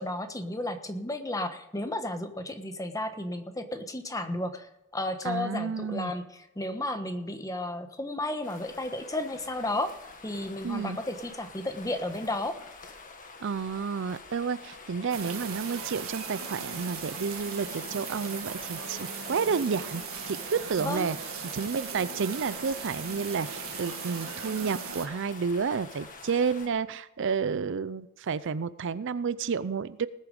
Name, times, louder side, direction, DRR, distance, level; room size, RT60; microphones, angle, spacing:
voice 1, 0.0-10.0 10.2-12.6 20.8-21.1, left 1 dB, 15° left, 8 dB, 1.2 m, -33 dB
voice 2, 5.2-6.1 10.6-11.0 13.4-21.2 21.5-30.1, right 5 dB, 60° right, 16 dB, 0.5 m, -30 dB
sound 1, 8.4-26.7, left 4 dB, 40° left, 1.7 m, -46 dB
sound 2, 15.1-25.1, right 7 dB, 90° right, 1.8 m, -38 dB
19.0 x 8.3 x 5.4 m, 0.89 s
head